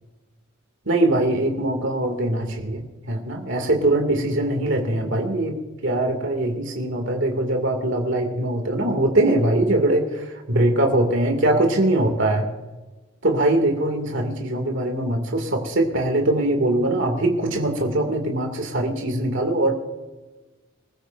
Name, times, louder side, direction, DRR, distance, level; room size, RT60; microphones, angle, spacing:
voice 1, 0.9-12.5 13.2-19.7, right 1 dB, 60° right, 3 dB, 2.4 m, -22 dB
25.0 x 14.5 x 2.6 m, 1.2 s
head